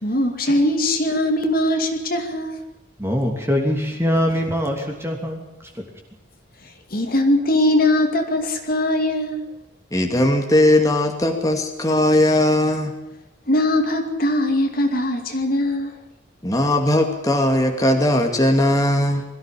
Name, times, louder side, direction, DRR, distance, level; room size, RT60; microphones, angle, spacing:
voice 1, 0.0-2.6 6.9-9.4 13.5-15.9, left 1 dB, 50° left, 4 dB, 2.5 m, -20 dB
voice 2, 3.0-5.4, equal, 15° right, 1 dB, 3.0 m, -22 dB
voice 3, 9.9-12.9 16.4-19.2, left 1 dB, 20° left, 3 dB, 2.3 m, -18 dB
22.0 x 14.5 x 8.6 m, 0.95 s
head